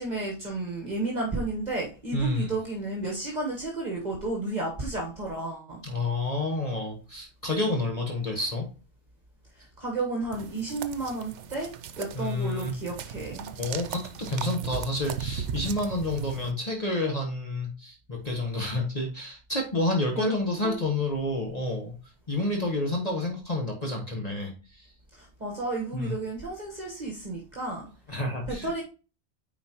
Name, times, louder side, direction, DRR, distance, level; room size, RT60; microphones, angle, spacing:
voice 1, 0.0-5.8 9.6-13.5 20.2-20.3 20.6-20.8 25.1-27.9 28.5-28.8, right 2 dB, 40° right, -2 dB, 1.5 m, -32 dB
voice 2, 2.1-2.5 5.8-8.7 12.1-12.7 13.5-21.9 22.3-24.9 25.9-26.2 28.1-28.8, left 2 dB, 35° left, 0 dB, 1.3 m, -29 dB
sound 1, 10.3-16.5, right 8 dB, 85° right, 0.9 m, -37 dB
9.4 x 4.4 x 2.9 m, 0.34 s
omnidirectional pair, 1.2 m